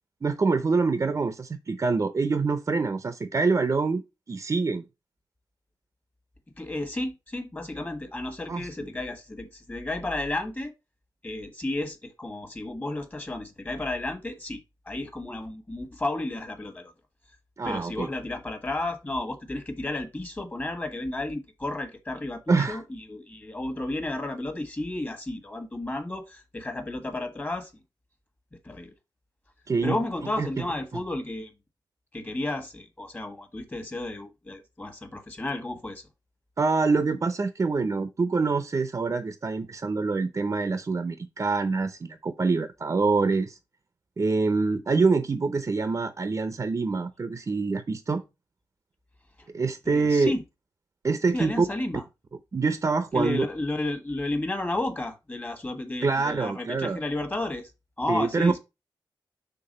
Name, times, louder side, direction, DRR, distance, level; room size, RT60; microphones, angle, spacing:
voice 1, 0.2-4.0 4.3-4.8 8.5-8.9 17.6-18.1 22.5-22.8 29.7-30.0 30.4-30.6 36.6-43.6 44.2-48.2 49.5-50.3 51.0-51.7 52.5-53.5 56.0-57.0 58.1-58.6, right 4 dB, 40° right, 0.6 m, -25 dB
voice 2, 6.6-10.7 11.2-16.9 17.6-27.7 28.6-28.9 29.8-31.5 32.1-36.0 49.8-50.4 51.3-52.0 53.1-57.7 58.0-58.6, left 2 dB, 20° left, 1.4 m, -32 dB
5.9 x 3.5 x 5.3 m
wide cardioid pair, 110°, 8 cm